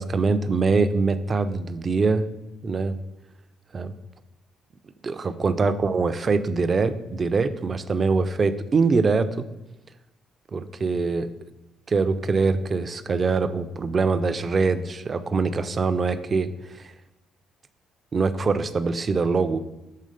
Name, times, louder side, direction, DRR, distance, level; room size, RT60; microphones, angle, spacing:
voice 1, 0.0-2.2 2.6-3.0 3.7-3.9 5.0-9.5 10.5-11.3 11.9-16.9 18.1-19.6, right 4 dB, 25° right, 12 dB, 0.3 m, -23 dB
6.5 x 3.6 x 5.0 m, 0.98 s
cardioid pair, 160°, 0 cm